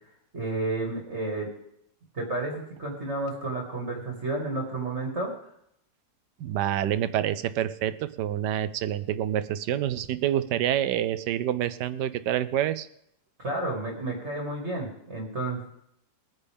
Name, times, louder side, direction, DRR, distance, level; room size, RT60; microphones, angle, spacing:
voice 1, 0.3-1.5 2.1-5.3 13.4-15.7, right 2 dB, 40° right, 0 dB, 2.5 m, -31 dB
voice 2, 6.4-12.9, right 11 dB, 85° right, 14 dB, 1.3 m, -27 dB
22.5 x 9.8 x 3.5 m, 0.75 s
omnidirectional pair, 1.8 m